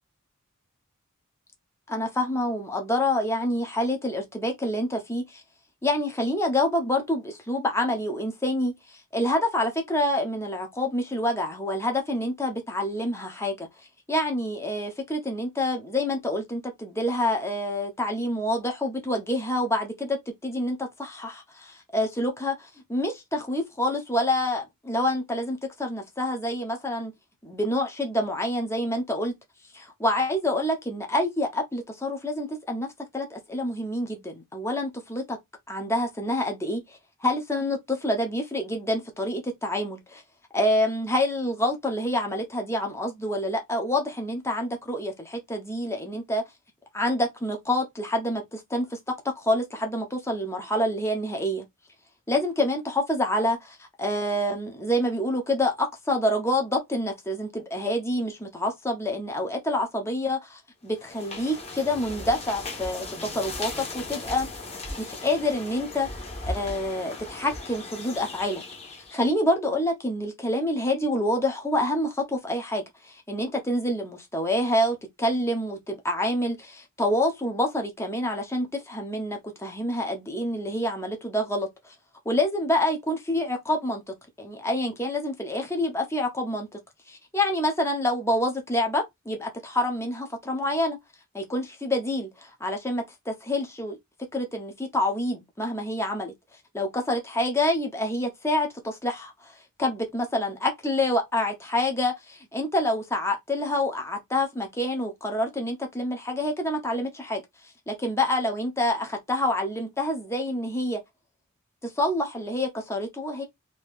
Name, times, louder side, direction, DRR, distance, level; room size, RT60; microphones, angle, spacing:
voice 1, 1.9-5.4 5.8-13.7 14.1-27.1 27.4-29.3 29.7-32.9 33.1-35.4 35.7-40.2 40.5-46.4 46.9-51.6 52.3-64.5 65.0-68.6 68.9-81.9 82.2-86.8 87.1-91.0 91.3-94.0 94.3-96.3 96.7-99.5 99.8-107.4 107.9-111.0 111.8-113.4, left 1 dB, 10° left, 0.8 m, -27 dB
sound 1, 60.9-69.3, left 2 dB, 30° left, 1.1 m, -37 dB
2.9 x 2.8 x 3.5 m
head